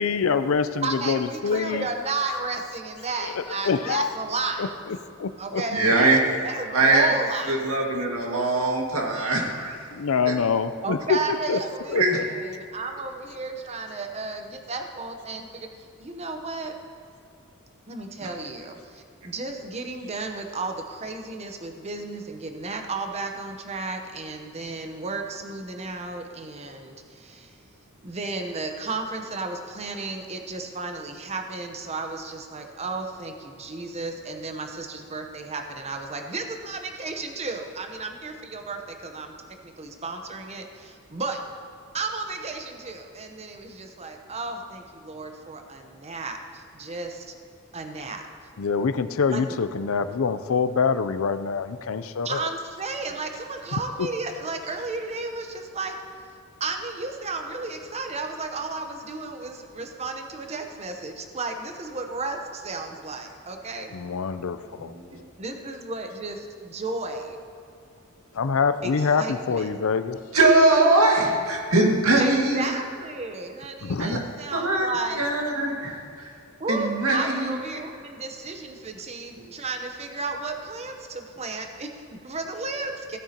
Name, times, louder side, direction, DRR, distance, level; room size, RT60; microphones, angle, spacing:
voice 1, 0.0-1.9 3.6-4.1 4.6-4.7 5.2-5.6 9.9-11.6 11.9-12.2 48.6-52.4 63.9-64.9 68.4-70.2 73.8-74.2, left 5 dB, 70° left, 12 dB, 0.5 m, -25 dB
voice 2, 0.8-4.7 5.4-5.9 6.4-7.5 10.8-15.7 16.0-16.7 17.9-27.5 28.0-39.3 39.6-41.4 41.9-47.3 47.7-48.3 49.3-49.4 52.2-56.0 56.6-63.9 65.4-67.4 68.8-69.7 72.2-75.2 76.6-83.2, right 3 dB, 30° right, 4 dB, 0.8 m, -33 dB
voice 3, 5.7-6.2 6.7-7.1 7.5-9.8 10.3-10.4 11.9-12.2 64.8-65.2 70.3-72.8 74.0-74.2 74.5-74.9 75.2-76.3 76.7-77.6, right 2 dB, 85° right, 0 dB, 1.9 m, -21 dB
16.0 x 9.0 x 2.9 m, 2.5 s
head